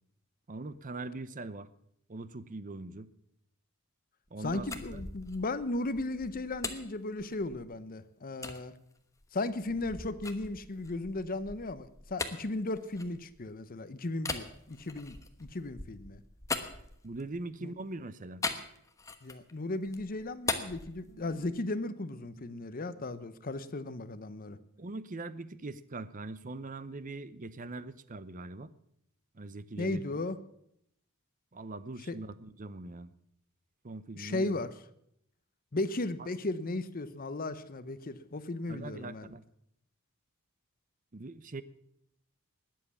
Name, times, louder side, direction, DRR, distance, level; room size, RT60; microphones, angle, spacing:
voice 1, 0.5-1.7 2.1-3.1 4.3-5.0 17.0-18.4 24.8-28.7 29.3-30.2 31.5-33.1 33.8-34.6 38.7-39.4 41.1-41.6, right 2 dB, 35° right, 15 dB, 0.7 m, -42 dB
sound 1, 4.3-7.8 8.4-8.6 9.2-13.6 14.2-17.4 18.4-19.5 19.8-21.6, left 3 dB, 15° left, 1.1 m, -40 dB
voice 2, 4.4-8.7 9.3-16.2 17.6-17.7 19.2-24.6 29.8-30.4 32.1-32.2 34.1-34.7 35.7-39.3, left 2 dB, 40° left, 14 dB, 0.7 m, -36 dB
Bass guitar, 21.1-27.3, right 11 dB, 60° left, 3.3 m, -62 dB
20.0 x 7.6 x 7.1 m, 0.74 s
head